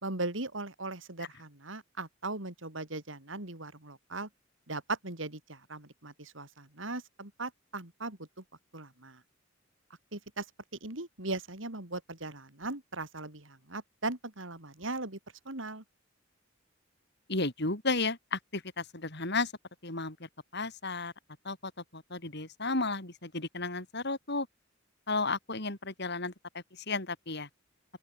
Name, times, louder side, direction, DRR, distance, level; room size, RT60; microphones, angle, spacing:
voice 1, 0.0-4.3 4.7-8.4 8.7-9.2 10.1-10.5 10.8-15.2 15.4-15.8, right 2 dB, 70° right, 4.2 m, -39 dB
voice 2, 17.3-19.5 19.8-20.2 20.5-21.1 21.5-24.5 25.1-27.5, left 3 dB, 60° left, 7.0 m, -33 dB
open air
head